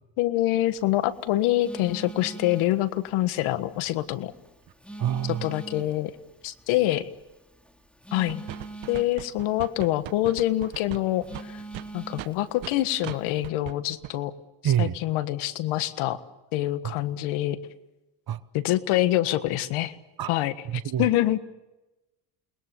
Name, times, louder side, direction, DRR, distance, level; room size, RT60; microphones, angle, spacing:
voice 1, 0.2-4.3 5.3-6.1 6.4-7.1 8.1-8.4 8.9-11.6 11.9-14.3 14.6-16.2 16.5-17.6 18.5-19.9 20.3-20.5 21.0-21.4, left 15 dB, 80° left, 13 dB, 1.6 m, -25 dB
Telephone, 0.7-13.5, right 2 dB, ahead, 3.2 m, -45 dB
voice 2, 5.0-5.6 14.6-15.0 16.8-16.9 18.3-18.4 20.2-20.3 20.7-21.1, right 10 dB, 45° right, 15 dB, 1.2 m, -26 dB
sound 1, 8.3-12.7 13.0-13.2 13.4-13.7 14.0-14.1, right 15 dB, 70° right, 1.4 m, -39 dB
29.0 x 21.0 x 7.0 m, 1.0 s
supercardioid pair, 70°, 48 cm